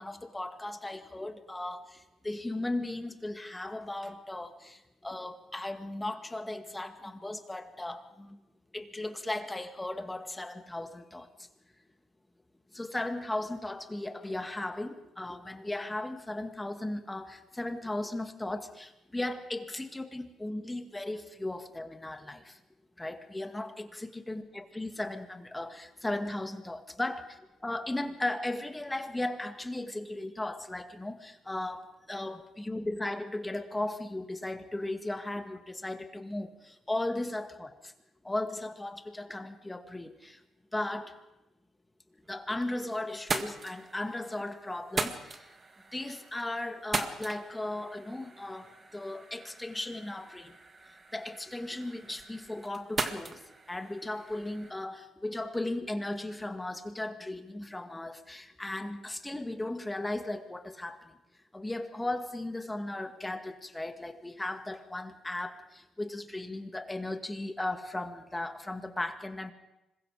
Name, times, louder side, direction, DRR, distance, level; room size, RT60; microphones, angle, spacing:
voice 1, 0.0-8.4 8.7-11.3 12.7-22.6 23.0-37.9 38.2-40.4 40.7-41.2 42.3-45.6 45.9-50.5 51.1-53.4 53.7-61.2 61.5-69.5, left 2 dB, 15° left, 7 dB, 2.1 m, -36 dB
sound 1, 42.2-42.8 43.1-54.7, right 3 dB, 35° right, 1.9 m, -39 dB
26.0 x 21.5 x 5.0 m, 0.92 s
cardioid pair, 90°, 0 cm